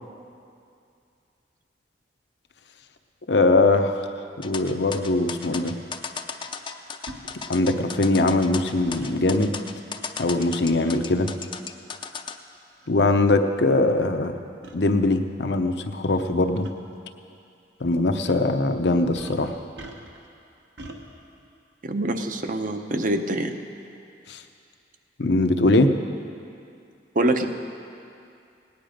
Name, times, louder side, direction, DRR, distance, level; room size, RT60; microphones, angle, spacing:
voice 1, 3.3-4.0 4.4-5.7 7.5-9.5 10.2-11.3 12.9-14.3 14.7-16.7 17.8-19.5 24.3-24.4 25.2-25.9, left 2 dB, 70° left, 6 dB, 0.8 m, -21 dB
sound 1, 4.4-12.4, left 5 dB, 30° left, 0.5 m, -35 dB
sound 2, 5.5-5.6 7.1-7.2 8.8-9.1 10.9-11.1 11.9-12.0 12.8-12.9 13.2-13.3 14.6-14.8 16.1-16.3 16.6-16.7 18.2-18.5 19.1-20.3 20.8-21.0, right 1 dB, 70° right, 1.2 m, -41 dB
voice 2, 21.8-23.5 27.1-27.5, right 1 dB, 50° right, 6 dB, 0.8 m, -24 dB
18.0 x 9.4 x 5.1 m, 2.5 s
head